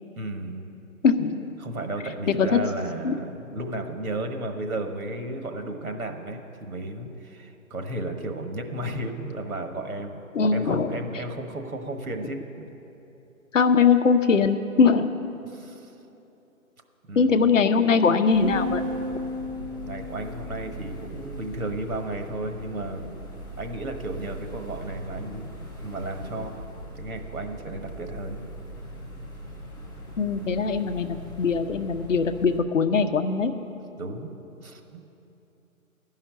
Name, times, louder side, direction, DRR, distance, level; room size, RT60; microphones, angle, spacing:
voice 1, 0.1-0.7 1.6-10.2 10.5-12.7 15.4-15.9 17.0-17.5 19.7-23.1 23.6-25.5 25.8-26.7 26.9-28.4 34.0-34.4 34.6-35.1, right 2 dB, 90° right, 5 dB, 1.4 m, -34 dB
voice 2, 1.0-1.4 2.4-2.6 3.0-3.1 10.3-11.0 13.5-15.1 17.2-19.0 30.2-33.5, left 5 dB, 60° left, 8 dB, 0.7 m, -21 dB
sound 1, 18.3-32.6, right 1 dB, 15° left, 0.8 m, -41 dB
sound 2, 18.4-20.9, equal, 50° right, 2.0 m, -33 dB
11.5 x 5.7 x 9.0 m, 3.0 s
hypercardioid pair, 170°, 42 cm